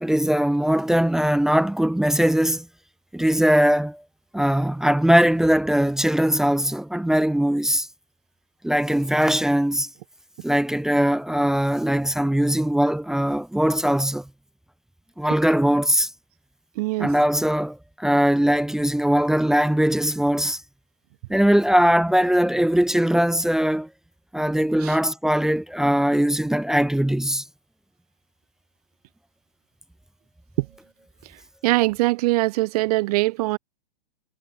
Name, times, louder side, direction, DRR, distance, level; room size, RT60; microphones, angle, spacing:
voice 1, 0.0-2.7 3.1-4.0 4.3-7.9 8.6-9.9 10.4-14.3 15.2-16.1 17.0-20.6 21.3-23.9 24.3-27.4, equal, ahead, 0.7 m, -20 dB
voice 2, 16.8-17.1 24.8-24.9 31.6-33.6, right 20 dB, 40° right, 1.2 m, -22 dB
hypercardioid pair, 150°, 30 cm